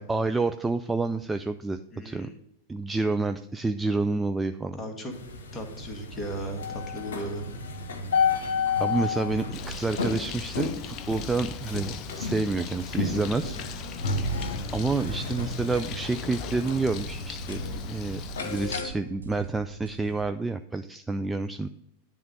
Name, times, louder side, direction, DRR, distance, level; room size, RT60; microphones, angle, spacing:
voice 1, 0.0-2.3 2.7-4.8 8.8-13.6 14.7-17.6 17.9-21.7, right 3 dB, 10° right, 8 dB, 0.3 m, -29 dB
voice 2, 1.9-2.4 4.8-5.1 5.5-7.5 13.8-14.2, right 1 dB, 15° left, 3 dB, 1.7 m, -36 dB
sound 1, 5.1-18.9, left 4 dB, 60° left, 1.2 m, -32 dB
Bird, 9.5-18.8, left 7 dB, 35° left, 0.6 m, -39 dB
sound 2, 14.2-20.3, right 3 dB, 75° right, 0.9 m, -44 dB
10.0 x 3.7 x 6.6 m, 0.80 s
figure-of-eight pair, 90°, 0 cm